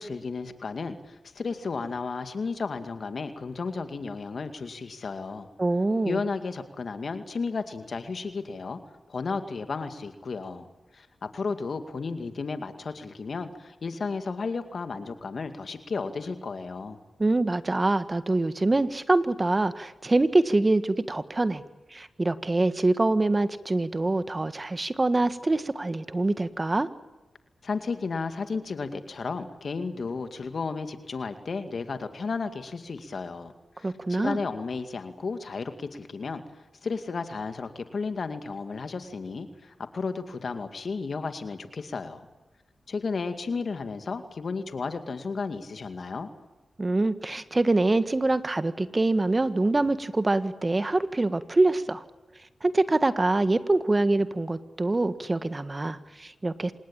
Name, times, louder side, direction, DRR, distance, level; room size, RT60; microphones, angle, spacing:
voice 1, 0.0-5.5 6.0-8.8 9.1-10.7 10.9-17.0 27.6-33.5 33.8-36.4 36.8-42.3 42.9-46.3, left 4 dB, 65° left, 8 dB, 2.2 m, -33 dB
voice 2, 5.6-6.2 17.2-21.6 21.9-26.9 33.8-34.4 46.8-52.0 52.6-56.7, right 2 dB, 35° right, 12 dB, 1.6 m, -25 dB
26.0 x 19.5 x 8.9 m, 1.1 s
cardioid pair, 45°, 0 cm